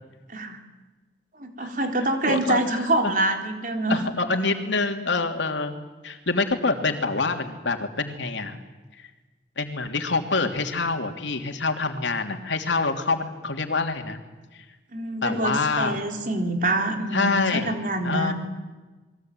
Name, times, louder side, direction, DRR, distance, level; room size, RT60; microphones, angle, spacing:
voice 1, 0.3-0.6 1.3-4.1 14.9-18.3, right 1 dB, 45° right, 4 dB, 3.8 m, -26 dB
voice 2, 2.3-3.1 3.9-5.8 6.0-8.6 9.0-9.1 9.6-14.2 15.2-16.0 17.1-17.8 18.0-18.3, left 3 dB, 90° left, 5 dB, 3.1 m, -26 dB
28.5 x 22.5 x 9.3 m, 1.2 s
head